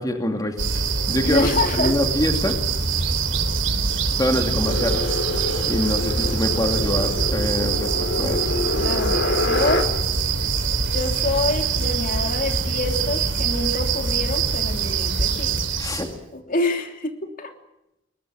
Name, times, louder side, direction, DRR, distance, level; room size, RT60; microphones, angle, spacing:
voice 1, 0.0-1.5 1.8-2.6 4.2-5.0 5.7-7.9 8.2-8.5 15.8-16.1, left 1 dB, 20° left, 4 dB, 2.4 m, -25 dB
sound 1, 0.6-16.1, right 5 dB, 70° right, 3.6 m, -24 dB
voice 2, 1.2-1.9 8.8-9.9 10.9-15.6 16.3-17.5, left 3 dB, 45° left, 5 dB, 3.1 m, -26 dB
sound 2, 4.6-9.8, left 2 dB, 70° left, 3.6 m, -26 dB
22.5 x 21.5 x 8.7 m, 0.87 s
head